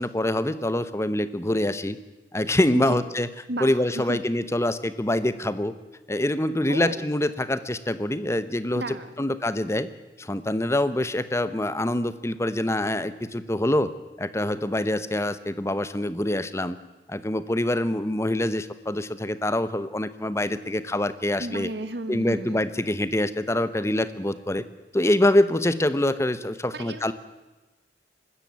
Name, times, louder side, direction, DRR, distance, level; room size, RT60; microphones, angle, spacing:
voice 1, 0.0-2.0 2.3-3.3 3.6-5.7 6.1-9.9 10.2-13.9 14.2-16.8 17.1-21.7 22.1-24.6 24.9-27.1, left 1 dB, 15° left, 13 dB, 0.9 m, -25 dB
voice 2, 2.7-3.0 3.5-4.2 6.7-7.0 8.7-9.3 21.4-22.7 26.7-27.1, right 1 dB, 70° right, 10 dB, 1.7 m, -33 dB
24.0 x 14.0 x 9.3 m, 1.1 s
head